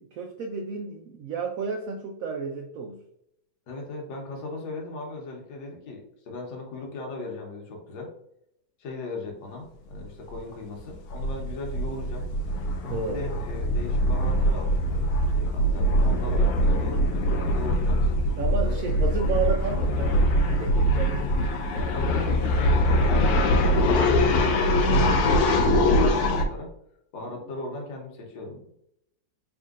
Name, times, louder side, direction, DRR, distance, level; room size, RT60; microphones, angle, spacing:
voice 1, 0.0-3.0 12.8-13.3 18.4-20.3 20.6-22.1 27.3-27.4, right 5 dB, 85° right, 4 dB, 0.7 m, -32 dB
voice 2, 3.7-8.1 8.8-12.2 13.1-17.0 17.5-18.0 18.6-19.0 21.9-26.7 27.1-28.6, left 2 dB, 90° left, 0 dB, 1.7 m, -38 dB
sound 1, 9.9-10.1 10.3-10.4 10.8-26.4, equal, 70° left, 1.0 m, -23 dB
4.4 x 3.7 x 2.4 m, 0.77 s
omnidirectional pair, 2.0 m